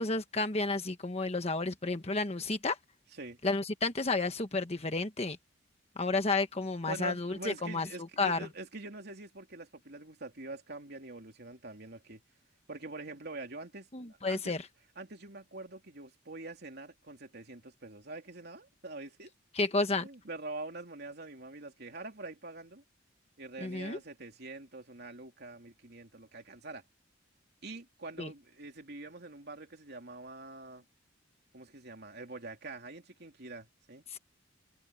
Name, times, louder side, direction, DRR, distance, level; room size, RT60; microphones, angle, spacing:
voice 1, 0.0-2.8 3.4-5.4 6.0-7.9 8.2-8.5 13.9-14.6 19.5-20.1 23.6-24.0 28.2-28.3 34.1-34.2, left 3 dB, 30° left, 1.2 m, -31 dB
voice 2, 6.9-12.2 12.7-13.9 14.3-14.5 15.0-19.3 20.0-22.8 23.4-26.8 27.6-30.8 31.5-34.0, right 2 dB, 55° right, 3.2 m, -45 dB
head